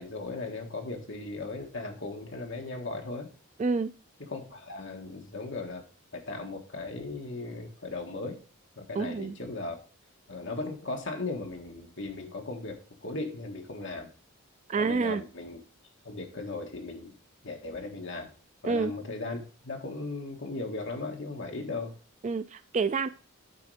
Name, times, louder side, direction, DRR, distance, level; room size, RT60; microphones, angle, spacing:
voice 1, 0.0-3.3 4.2-5.8 6.1-8.4 8.8-9.8 10.3-14.1 14.8-15.6 16.0-17.1 17.4-18.3 18.6-21.9, left 3 dB, 55° left, 2 dB, 1.6 m, -37 dB
voice 2, 3.6-3.9 8.9-9.4 14.7-15.2 18.6-18.9 22.2-23.1, right 4 dB, 35° right, 13 dB, 0.3 m, -28 dB
8.4 x 4.5 x 4.9 m, 0.37 s
head